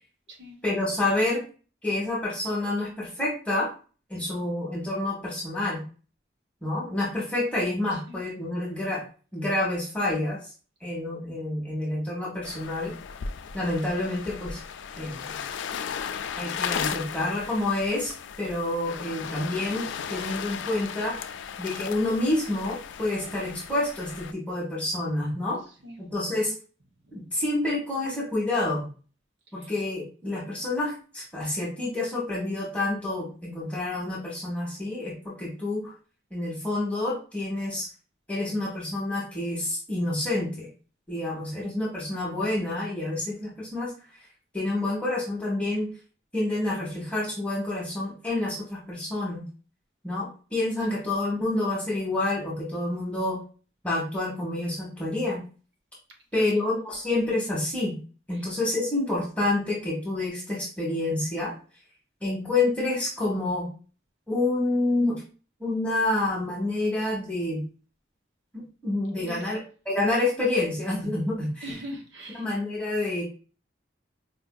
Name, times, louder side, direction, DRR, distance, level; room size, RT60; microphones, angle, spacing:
voice 1, 0.6-1.4 1.8-3.7 4.1-5.8 6.6-9.0 9.3-10.5 10.8-12.9 13.5-14.6 15.0-15.4 16.4-21.2 21.6-25.6 26.0-26.5 27.1-28.9 29.5-35.9 36.3-37.9 38.3-40.7 41.1-43.9 44.5-46.0 46.3-49.4 50.0-53.4 53.8-55.4 56.3-57.9 58.3-61.6 62.2-63.7 64.3-65.2 65.6-67.6 68.5-69.6 69.8-71.7 72.4-73.2, left 2 dB, 5° left, 1.0 m, -28 dB
voice 2, 7.9-8.2 25.8-26.0 27.0-27.4 29.6-29.7 56.3-56.5 69.2-69.6 71.6-72.5, equal, 70° right, 1.0 m, -41 dB
sound 1, 12.4-24.3, left 7 dB, 75° left, 0.3 m, -36 dB
4.5 x 2.5 x 2.2 m
head